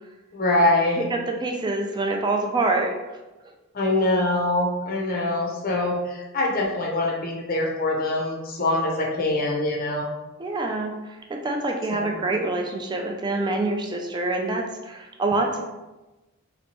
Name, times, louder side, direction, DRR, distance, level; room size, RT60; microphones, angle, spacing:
voice 1, 0.3-1.0 3.7-10.1 11.9-12.2, left 2 dB, 45° left, -1 dB, 0.6 m, -24 dB
voice 2, 1.0-3.2 10.4-10.9 11.3-15.6, right 2 dB, 20° right, 2 dB, 0.3 m, -26 dB
2.9 x 2.1 x 2.8 m, 1.1 s
head